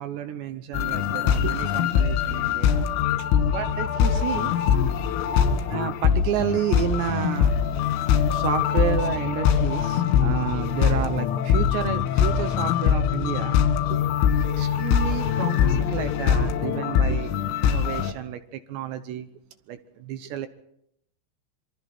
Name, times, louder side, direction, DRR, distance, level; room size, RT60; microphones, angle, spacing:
voice 1, 0.0-2.9 3.2-4.5 5.7-7.6 8.3-13.6 13.9-14.0 14.5-17.3 17.6-19.3 19.7-20.5, right 10 dB, 75° right, 10 dB, 2.8 m, -31 dB
sound 1, 0.7-18.1, left 8 dB, 80° left, 4.2 m, -23 dB
27.0 x 23.5 x 4.4 m, 0.76 s
omnidirectional pair, 5.8 m